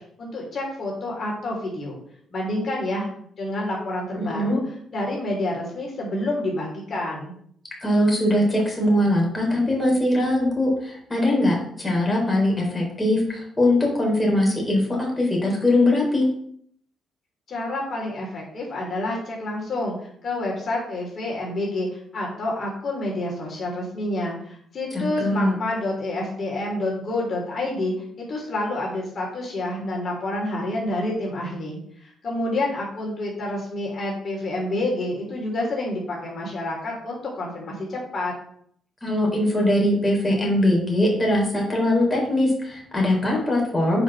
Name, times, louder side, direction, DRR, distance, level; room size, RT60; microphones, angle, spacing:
voice 1, 0.2-2.0 2.3-4.6 4.9-7.3 17.5-20.0 20.2-21.9 22.1-27.9 28.3-38.3, left 1 dB, 45° left, -2 dB, 3.4 m, -28 dB
voice 2, 4.2-4.6 7.8-16.3 24.9-25.5 39.0-44.0, left 1 dB, 15° left, -2 dB, 3.9 m, -21 dB
7.7 x 5.2 x 6.3 m, 0.64 s
cardioid pair, 90°, 0 cm